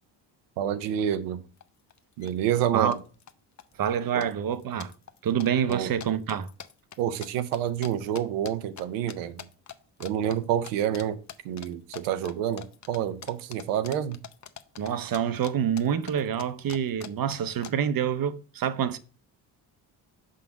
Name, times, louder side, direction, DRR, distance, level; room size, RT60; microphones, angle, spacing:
voice 1, 0.6-1.4 2.2-3.0 4.1-4.2 5.7-5.9 7.0-9.4 10.0-11.2 11.4-14.2, right 10 dB, 85° right, 0.8 m, -28 dB
sound 1, 1.6-1.7 1.9-2.3 2.6-3.3 3.6-4.0 4.2-8.8 9.1-9.8 10.0-10.4 10.6-11.0 11.3-15.5 15.8-17.7, left 9 dB, 35° left, 0.7 m, -43 dB
voice 2, 3.8-4.9 5.2-6.5 14.8-19.0, right 8 dB, 45° right, 0.7 m, -27 dB
5.6 x 3.8 x 5.1 m
supercardioid pair, 60°, 50 cm